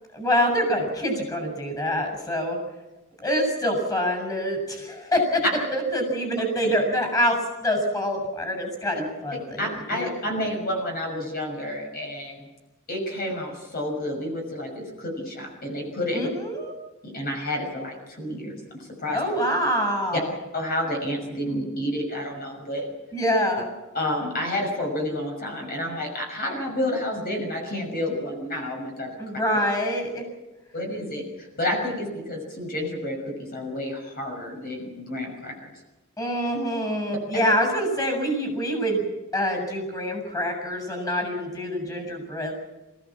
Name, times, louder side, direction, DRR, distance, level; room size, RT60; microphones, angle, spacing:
voice 1, 0.1-2.6 3.2-5.4 5.7-10.1 16.1-16.7 19.1-20.3 23.1-23.7 29.2-30.2 36.2-39.1 39.3-42.6, equal, 15° left, 4 dB, 6.8 m, -25 dB
voice 2, 9.3-12.4 12.9-16.3 17.0-19.2 20.5-22.9 23.9-29.1 30.7-35.7 37.3-37.4, left 1 dB, 45° left, 1 dB, 6.2 m, -30 dB
28.0 x 16.0 x 7.4 m, 1.1 s
head